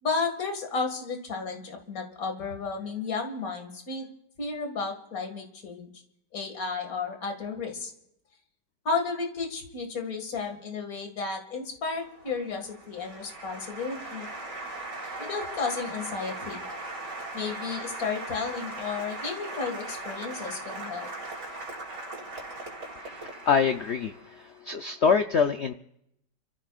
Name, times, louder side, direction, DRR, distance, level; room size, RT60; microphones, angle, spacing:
voice 1, 0.0-4.1 4.4-5.9 6.3-7.9 8.8-14.3 15.2-16.6 17.3-21.1, left 4 dB, 50° left, 3 dB, 2.4 m, -33 dB
Applause, 11.9-24.4, right 2 dB, 65° right, 3.4 m, -39 dB
voice 2, 23.0-25.7, left 6 dB, 80° left, 7 dB, 0.6 m, -25 dB
29.5 x 14.5 x 2.4 m, 0.76 s
omnidirectional pair, 2.0 m